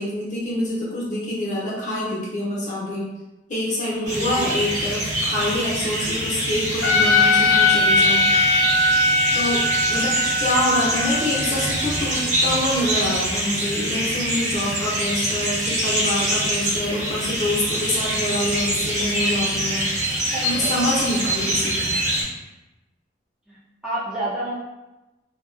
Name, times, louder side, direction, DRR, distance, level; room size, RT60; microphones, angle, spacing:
voice 1, 0.0-3.1 3.5-8.2 9.3-21.9, left 1 dB, 40° left, -6 dB, 0.9 m, -26 dB
voice 2, 3.9-4.5 20.5-20.8 23.5-24.5, right 1 dB, 5° right, -9 dB, 0.3 m, -30 dB
sound 1, 4.0-22.2, right 1 dB, 40° right, 0.7 m, -25 dB
Trumpet, 6.8-12.0, left 2 dB, 60° left, 0.4 m, -20 dB
2.7 x 2.3 x 2.2 m, 1.0 s
head